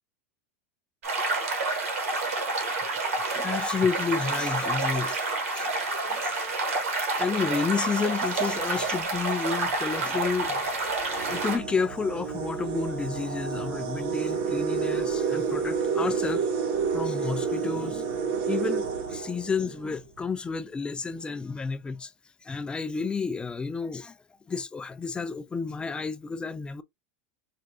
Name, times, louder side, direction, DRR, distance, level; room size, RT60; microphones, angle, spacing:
sound 1, 1.0-11.6, right 3 dB, 90° right, 1.5 m, -29 dB
voice 1, 2.8-5.3 5.5-5.7 6.1-6.4 7.2-10.7 11.3-16.5 16.9-18.2 18.5-22.1 22.4-24.2 24.5-26.8, left 5 dB, 15° left, 0.3 m, -31 dB
sound 2, 8.6-8.9 9.7-9.8 10.2-20.0, right 6 dB, 60° right, 1.0 m, -30 dB
4.5 x 2.5 x 2.6 m
supercardioid pair, 130°, 7 cm